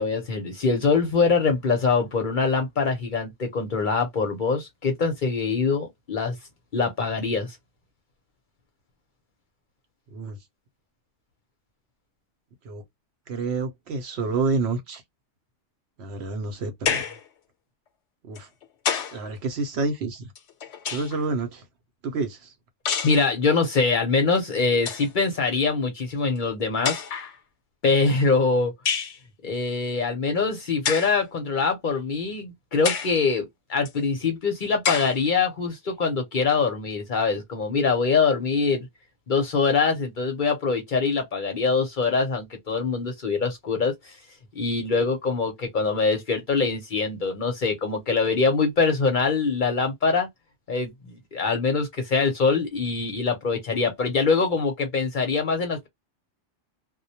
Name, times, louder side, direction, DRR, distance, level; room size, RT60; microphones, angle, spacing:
voice 1, 0.0-6.3 6.7-7.5 23.0-27.0 27.8-28.7 29.4-38.9 39.3-43.9 44.6-50.3 50.7-55.9, left 4 dB, 50° left, 0.7 m, -24 dB
voice 2, 13.3-15.0 16.0-17.1 18.3-18.5 19.1-20.3 20.9-21.6 22.0-22.5, right 3 dB, 70° right, 0.8 m, -28 dB
sound 1, 16.9-17.3 18.4-19.2 20.4-21.3 22.9-23.2 24.4-24.5 24.7-25.1 26.1-26.2 26.8-27.4 28.9-29.2 30.8-31.2 31.9-32.0 32.8-33.2 33.9-34.0 34.8-35.2, left 7 dB, 75° left, 0.9 m, -28 dB
2.1 x 2.1 x 2.7 m
omnidirectional pair, 1.2 m